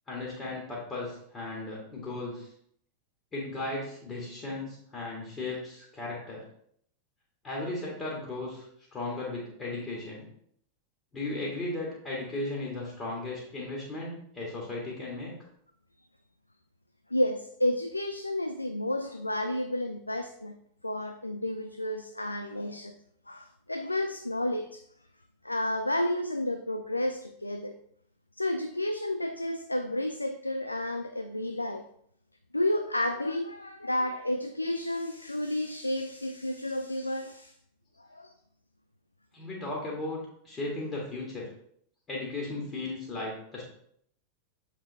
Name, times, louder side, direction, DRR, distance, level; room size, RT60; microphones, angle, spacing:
voice 1, 0.1-2.5 3.3-6.5 7.4-8.7 8.9-10.3 11.1-15.3 39.3-41.5 42.1-43.6, left 2 dB, 25° left, -3 dB, 1.9 m, -36 dB
voice 2, 17.1-20.6 20.8-22.9 23.3-24.8 25.4-27.7 28.4-31.8 32.5-37.5 38.0-38.3, left 1 dB, 85° left, 7 dB, 0.3 m, -31 dB
7.2 x 4.6 x 3.4 m, 0.67 s
figure-of-eight pair, 90°, 0 cm